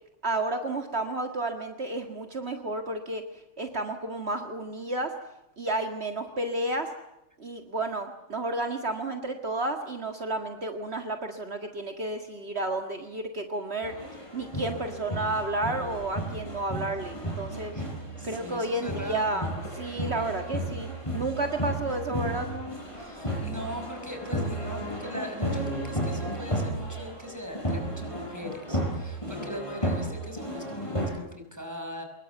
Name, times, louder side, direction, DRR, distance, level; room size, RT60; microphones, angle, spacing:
voice 1, 0.2-3.2 3.6-5.1 5.6-6.9 7.4-13.9 14.3-17.7 18.2-19.5 19.7-22.5, right 2 dB, 60° right, 5 dB, 2.2 m, -31 dB
sound 1, 13.8-31.1, equal, 25° left, 7.8 m, -33 dB
voice 2, 18.2-19.5 22.9-32.0, left 1 dB, 15° right, 4 dB, 5.6 m, -40 dB
25.5 x 21.5 x 8.2 m, 0.88 s
omnidirectional pair, 1.3 m